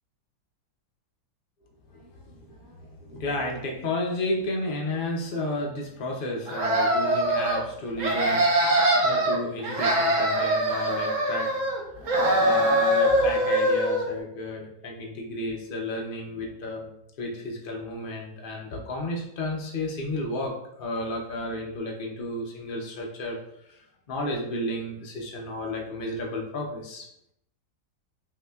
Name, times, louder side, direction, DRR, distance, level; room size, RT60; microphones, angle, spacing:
voice 1, 1.9-11.6 11.9-16.9 17.2-23.4 23.7-27.1, left 1 dB, 75° left, 0 dB, 0.4 m, -32 dB
sound 1, 6.5-7.6 8.0-9.4 9.6-11.8 12.1-14.1, right 1 dB, 55° right, 1.1 m, -23 dB
5.8 x 2.8 x 2.3 m, 0.77 s
omnidirectional pair, 1.8 m